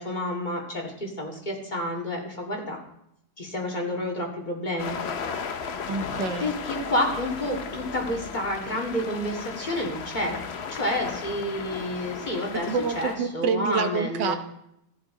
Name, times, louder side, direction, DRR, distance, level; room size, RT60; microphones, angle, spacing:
voice 1, 0.0-2.8 3.4-5.0 6.4-10.4 10.8-12.7 13.0-14.4, left 1 dB, 25° left, -1 dB, 2.4 m, -29 dB
sound 1, 4.8-13.2, left 6 dB, 55° left, 0.7 m, -35 dB
voice 2, 5.9-6.5 12.7-14.4, right 5 dB, 80° right, 7 dB, 1.6 m, -27 dB
14.5 x 10.5 x 3.9 m, 0.79 s
omnidirectional pair, 1.9 m